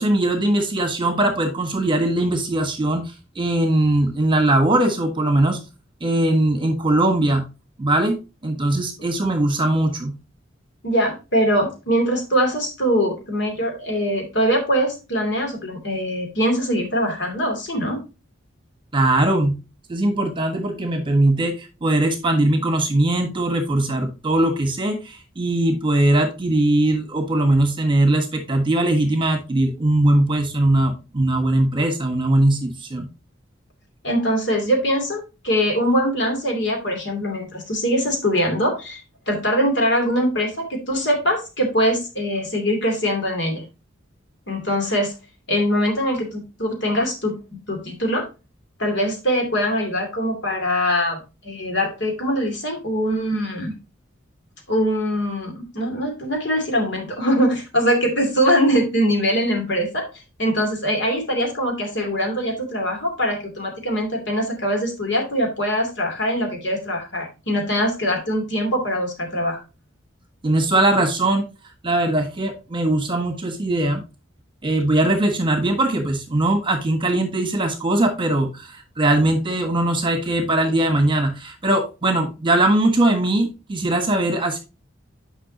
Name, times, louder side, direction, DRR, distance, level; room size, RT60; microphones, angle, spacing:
voice 1, 0.0-5.6 6.0-7.4 7.8-10.1 18.9-19.6 19.9-33.1 70.4-71.4 71.8-74.0 74.6-84.6, right 1 dB, 25° right, 5 dB, 1.4 m, -20 dB
voice 2, 10.8-18.0 34.0-39.0 39.3-43.6 44.5-45.1 45.5-48.3 48.8-51.2 51.4-53.7 54.7-60.1 60.4-69.6, equal, 60° left, 2 dB, 2.6 m, -22 dB
9.7 x 5.5 x 2.8 m, 0.28 s
head